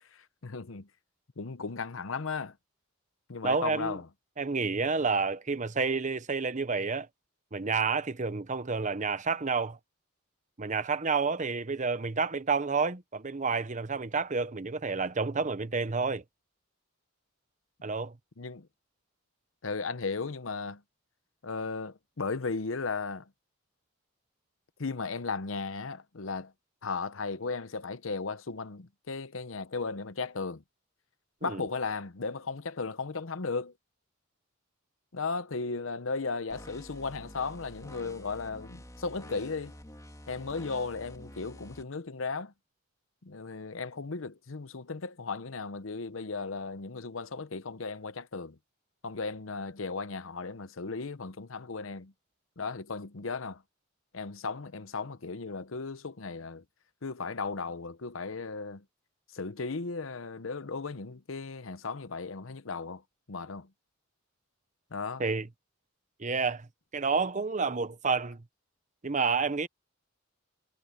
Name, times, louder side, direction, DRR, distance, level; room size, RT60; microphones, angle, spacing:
voice 1, 0.1-0.9 1.4-2.5 3.3-4.1 18.4-18.7 19.6-20.8 21.4-23.2 24.8-26.5 26.8-30.6 31.4-33.7 35.1-39.7 40.3-42.5 43.2-48.6 49.0-52.1 52.6-53.6 54.1-56.6 57.0-58.8 59.3-63.0 63.3-63.7 64.9-65.2, left 4 dB, 75° left, 0.9 m, -36 dB
voice 2, 3.4-4.0 4.4-7.1 7.5-9.8 10.6-16.2 17.8-18.1 31.4-31.6 65.2-65.5 66.2-66.7 66.9-68.4 69.0-69.7, right 4 dB, 35° right, 0.9 m, -29 dB
sound 1, 36.5-41.8, left 1 dB, 15° left, 2.7 m, -48 dB
head